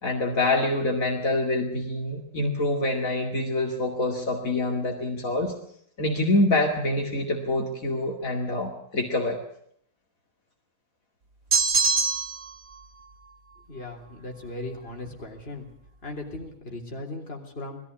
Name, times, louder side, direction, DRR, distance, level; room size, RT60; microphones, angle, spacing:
voice 1, 0.0-5.5 6.0-9.4, left 2 dB, 70° left, 1 dB, 2.8 m, -26 dB
sound 1, 11.5-12.5, right 4 dB, 85° right, 2.5 m, -23 dB
voice 2, 13.7-15.7 16.0-17.8, left 2 dB, 45° left, 1 dB, 3.8 m, -37 dB
20.5 x 14.5 x 9.6 m, 0.66 s
omnidirectional pair, 1.5 m